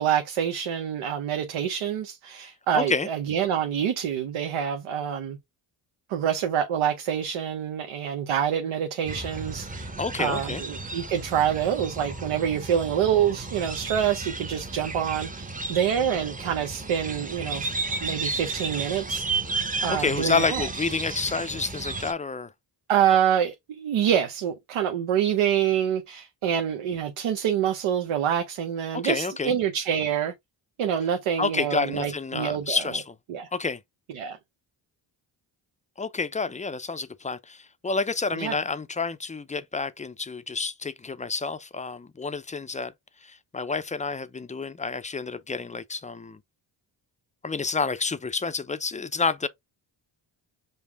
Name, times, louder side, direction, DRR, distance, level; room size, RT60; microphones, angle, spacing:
voice 1, 0.0-5.4 6.1-9.9 10.2-17.7 18.0-19.2 19.8-20.7 22.9-30.3 30.8-32.8 33.3-33.4 34.1-34.4 38.3-38.6, right 9 dB, 80° right, 0.8 m, -26 dB
voice 2, 2.7-3.1 10.0-10.6 19.9-22.5 28.9-29.5 31.4-33.1 33.5-33.8 36.0-42.9 43.2-46.4 47.4-49.5, left 4 dB, 15° left, 0.4 m, -29 dB
sound 1, 9.0-22.1, right 3 dB, 15° right, 0.8 m, -33 dB
5.4 x 2.1 x 3.3 m
cardioid pair, 65°, 50 cm